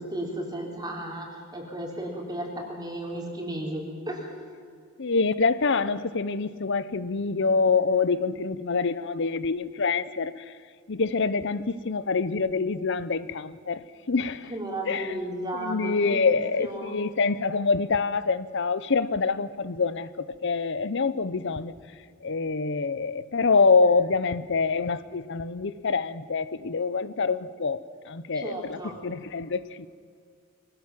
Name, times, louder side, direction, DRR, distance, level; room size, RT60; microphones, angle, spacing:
voice 1, 0.0-4.4 14.5-16.9 28.3-29.0, right 1 dB, 20° right, 3.6 m, -34 dB
voice 2, 5.0-10.5 10.9-14.5 14.9-15.2 15.6-21.7 22.2-29.9, left 4 dB, 65° left, 0.8 m, -26 dB
23.5 x 18.0 x 7.5 m
head